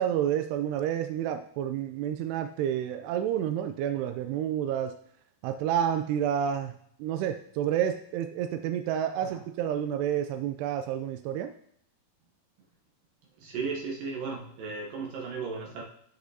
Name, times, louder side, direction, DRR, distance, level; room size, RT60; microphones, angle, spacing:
voice 1, 0.0-5.0 5.4-11.5, right 10 dB, 85° right, 7 dB, 2.6 m, -29 dB
voice 2, 13.4-15.8, right 4 dB, 70° right, 0 dB, 2.3 m, -35 dB
13.5 x 6.2 x 2.7 m, 0.68 s
omnidirectional pair, 4.7 m